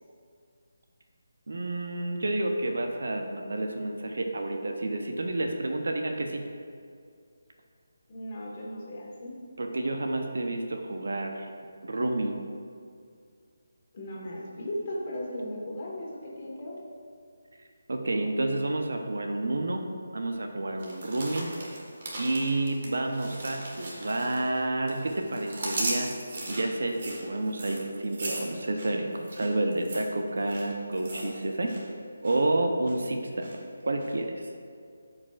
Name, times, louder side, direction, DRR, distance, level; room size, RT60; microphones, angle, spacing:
voice 1, 1.5-6.4 9.6-11.5 11.8-12.4 17.9-19.9 20.1-21.5 22.2-26.1 26.5-31.7 32.2-33.5 33.8-34.3, right 2 dB, 70° right, 4 dB, 0.7 m, -29 dB
voice 2, 8.1-9.4 13.9-16.8, equal, 30° left, -4 dB, 1.5 m, -37 dB
sound 1, 20.8-24.6 24.9-31.8 32.1-32.4 32.8-33.5 34.0-34.1, right 2 dB, 40° right, 1.5 m, -38 dB
13.0 x 4.9 x 2.4 m, 2.3 s
hypercardioid pair, 175°, 0 cm